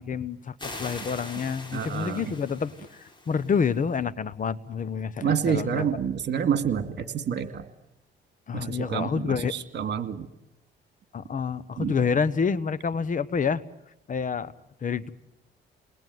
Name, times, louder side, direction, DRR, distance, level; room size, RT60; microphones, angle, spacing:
voice 1, 0.0-2.7 3.3-5.9 8.5-9.5 11.1-13.6 14.1-14.5 14.8-15.1, left 6 dB, 40° left, 16 dB, 1.1 m, -28 dB
sound 1, 0.6-3.9, left 2 dB, 25° left, 6.0 m, -42 dB
voice 2, 1.7-2.3 5.2-7.6 8.5-10.3 11.8-12.0, right 7 dB, 60° right, 10 dB, 2.3 m, -28 dB
28.5 x 20.5 x 9.4 m, 0.90 s
cardioid pair, 90°, 20 cm